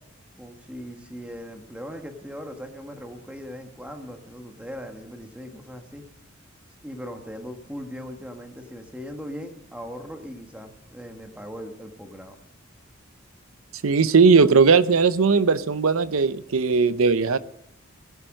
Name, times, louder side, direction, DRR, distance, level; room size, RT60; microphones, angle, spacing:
voice 1, 0.4-6.0 6.8-12.4, equal, 5° right, 4 dB, 1.4 m, -39 dB
voice 2, 13.8-17.4, right 5 dB, 80° right, 15 dB, 0.6 m, -18 dB
15.5 x 11.0 x 6.4 m, 0.81 s
head